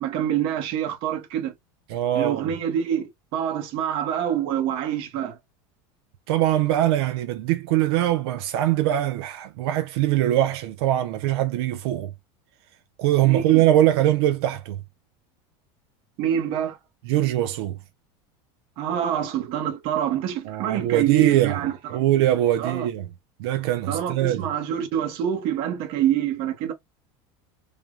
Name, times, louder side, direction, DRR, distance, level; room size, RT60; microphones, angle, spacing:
voice 1, 0.0-1.5 2.1-5.4 13.2-13.7 16.2-16.8 18.8-22.0 22.6-22.9 23.9-26.7, right 10 dB, 45° right, 0.7 m, -26 dB
voice 2, 1.9-2.5 6.3-12.1 13.0-14.8 17.1-17.8 20.5-21.6 21.9-23.0 23.4-24.5, right 13 dB, 75° right, 0.4 m, -22 dB
3.2 x 2.0 x 2.3 m
cardioid pair, 170°, 13 cm